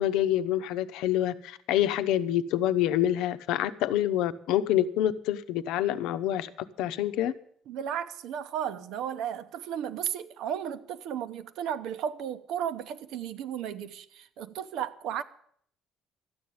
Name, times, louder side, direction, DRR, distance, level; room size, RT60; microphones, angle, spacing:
voice 1, 0.0-6.5 6.8-7.3, left 12 dB, 80° left, 0.8 m, -27 dB
voice 2, 7.7-15.2, right 9 dB, 60° right, 1.0 m, -34 dB
13.0 x 8.7 x 9.4 m
cardioid pair, 170°, 0 cm